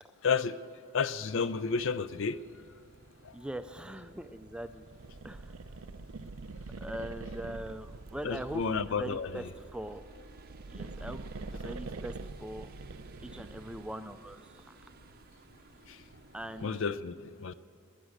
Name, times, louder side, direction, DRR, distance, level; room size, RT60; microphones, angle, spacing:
voice 1, 0.9-2.4 8.2-9.4 15.9-16.0 16.6-17.5, left 5 dB, 60° left, 0.5 m, -31 dB
sound 1, 1.1-16.9, right 2 dB, 45° right, 0.7 m, -54 dB
voice 2, 3.3-4.9 5.2-5.5 6.8-10.0 10.7-11.3 11.5-12.7 13.2-14.7 16.3-16.7, right 1 dB, 5° right, 0.4 m, -41 dB
sound 2, 4.9-9.4 10.3-14.0, right 3 dB, 80° right, 0.6 m, -44 dB
20.5 x 9.9 x 6.5 m
head